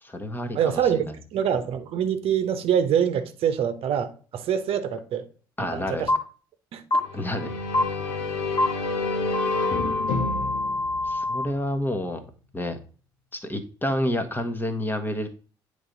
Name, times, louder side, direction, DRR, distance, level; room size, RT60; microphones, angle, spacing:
voice 1, 0.0-1.1 5.6-6.0 7.1-7.5 11.0-12.2 12.5-12.8 13.3-15.3, left 1 dB, 15° left, 1.3 m, -29 dB
voice 2, 0.5-1.1 1.3-5.3 5.6-6.1 6.7-7.0, right 8 dB, 60° right, 0.9 m, -25 dB
sound 1, 6.1-6.2 6.9-7.0 7.7-7.8 8.6-8.7 9.3-11.4, left 2 dB, 40° left, 1.3 m, -25 dB
sound 2, 7.0-11.8, left 3 dB, 75° left, 1.3 m, -29 dB
9.4 x 3.4 x 3.9 m
hypercardioid pair, 50°, 11 cm